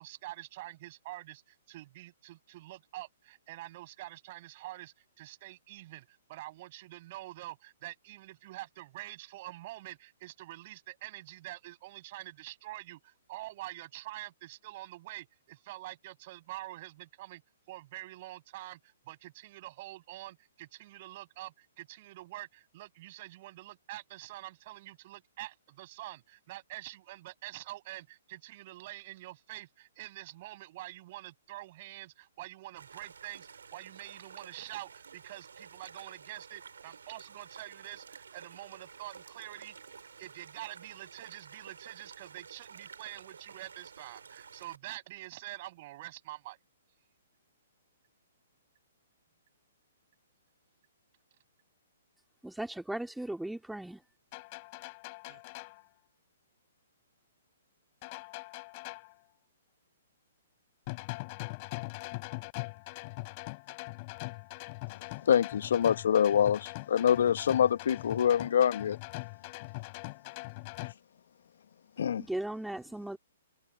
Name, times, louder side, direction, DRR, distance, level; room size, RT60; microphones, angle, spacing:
voice 1, 0.0-17.4 17.7-39.8 40.2-46.6 55.3-55.4, right 17 dB, 45° right, 7.8 m, -46 dB
sound 1, 32.8-44.8, right 6 dB, 75° right, 4.7 m, -51 dB
voice 2, 52.4-54.0 72.2-73.2, right 1 dB, 5° right, 3.3 m, -37 dB
sound 2, 54.3-55.8 58.0-59.1 60.9-70.9, left 27 dB, 40° left, 6.2 m, -42 dB
voice 3, 65.2-69.0 72.0-72.2, left 8 dB, 65° left, 1.2 m, -25 dB
figure-of-eight pair, 125°, 0 cm